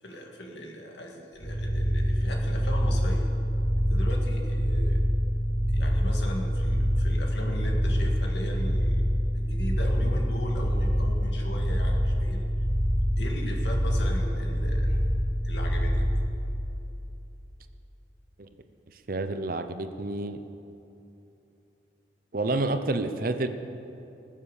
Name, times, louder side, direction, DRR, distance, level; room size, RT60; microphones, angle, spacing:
voice 1, 0.0-3.3 3.8-5.0 5.7-9.0 9.3-12.4 13.2-15.0 15.4-16.1, equal, 70° left, 1 dB, 2.1 m, -38 dB
sound 1, 1.4-16.1, equal, 10° right, 4.2 m, -25 dB
voice 2, 19.1-20.4 22.3-23.5, right 2 dB, 50° right, 9 dB, 0.7 m, -29 dB
20.0 x 7.5 x 6.6 m, 2.9 s
head